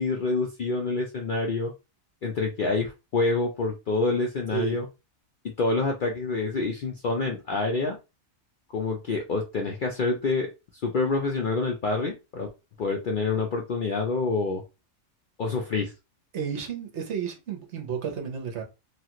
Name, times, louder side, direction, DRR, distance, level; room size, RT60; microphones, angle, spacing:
voice 1, 0.0-1.7 2.2-4.9 5.6-8.0 8.7-10.5 10.8-12.5 12.8-14.6 15.4-15.9, left 3 dB, 60° left, 0.5 m, -27 dB
voice 2, 16.3-18.6, right 8 dB, 60° right, 1.1 m, -32 dB
3.0 x 2.4 x 2.8 m
omnidirectional pair, 1.4 m